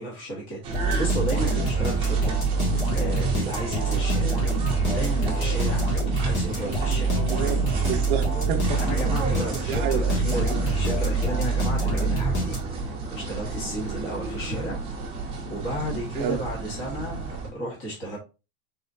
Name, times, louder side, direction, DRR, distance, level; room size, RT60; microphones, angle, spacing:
voice 1, 0.0-2.4 2.7-4.4 4.8-5.9 6.2-7.2 8.8-14.9 15.5-18.2, right 1 dB, 25° left, 1.4 m, -33 dB
sound 1, 0.6-17.5, right 3 dB, 15° right, 0.9 m, -33 dB
sound 2, 0.7-13.0, right 3 dB, 70° left, 2.2 m, -25 dB
voice 2, 7.3-8.8 9.7-10.0 16.2-16.4, right 8 dB, 40° right, 0.5 m, -29 dB
4.2 x 3.6 x 2.7 m
supercardioid pair, 175°, 42 cm